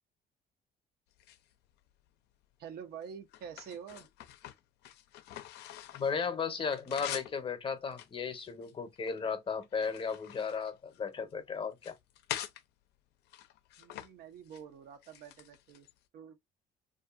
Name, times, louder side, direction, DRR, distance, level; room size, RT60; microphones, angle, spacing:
sound 1, 1.1-2.1 2.7-6.2 6.5-7.4 7.9-9.2 9.6-11.3 11.7-12.6 13.2-14.1 14.4-14.6 15.0-16.0, left 12 dB, 80° left, 0.4 m, -45 dB
voice 1, 2.6-4.1 13.8-15.9 16.1-16.4, right 7 dB, 70° right, 0.6 m, -47 dB
voice 2, 5.9-12.0, left 5 dB, 30° left, 0.7 m, -35 dB
2.6 x 2.5 x 2.4 m
cardioid pair, 110°, 17 cm